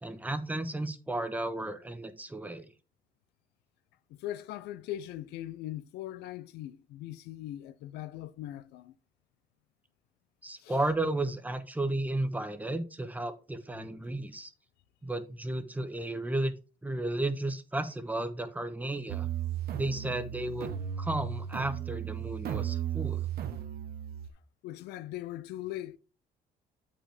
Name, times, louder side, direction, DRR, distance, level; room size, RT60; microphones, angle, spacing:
voice 1, 0.0-2.7 10.4-14.5 15.0-16.5 16.8-19.3 19.7-20.7 21.0-23.3, right 2 dB, 10° right, 1.0 m, -33 dB
voice 2, 4.1-8.9 10.6-10.8 24.6-26.0, left 13 dB, 80° left, 0.5 m, -40 dB
sound 1, 19.1-24.3, right 10 dB, 65° right, 1.0 m, -35 dB
8.6 x 5.3 x 3.4 m
cardioid pair, 110°, 17 cm